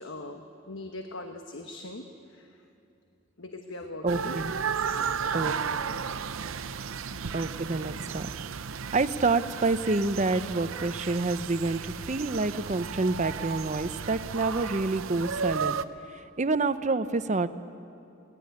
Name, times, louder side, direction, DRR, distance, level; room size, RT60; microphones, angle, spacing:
voice 1, 0.0-2.6 3.4-4.4 4.9-6.2 6.5-6.6, left 2 dB, 65° left, 5 dB, 1.2 m, -42 dB
voice 2, 4.0-4.5 5.3-5.5 7.3-8.3 8.9-15.8 16.1-17.5, right 3 dB, 35° right, 12 dB, 0.7 m, -28 dB
sound 1, 4.1-15.9, right 6 dB, 90° right, 0.7 m, -34 dB
22.5 x 17.5 x 9.5 m, 2.8 s
head